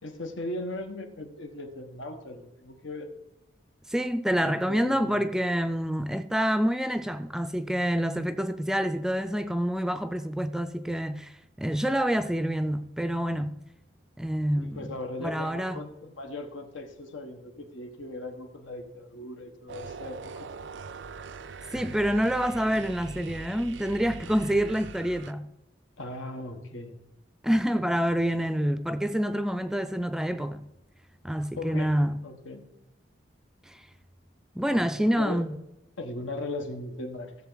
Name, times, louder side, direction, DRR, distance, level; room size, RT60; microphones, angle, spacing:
voice 1, 0.0-3.1 4.4-5.2 14.6-20.5 26.0-27.0 31.6-31.9 32.2-32.7 34.7-35.5 36.0-37.3, left 2 dB, 90° left, 1.4 m, -38 dB
voice 2, 3.9-13.6 14.2-15.8 21.7-25.5 27.4-30.7 31.2-32.2 33.7-33.8 34.6-35.6, equal, 5° right, 0.3 m, -27 dB
sound 1, 19.7-25.3, right 5 dB, 70° right, 0.4 m, -42 dB
16.0 x 7.3 x 4.0 m
head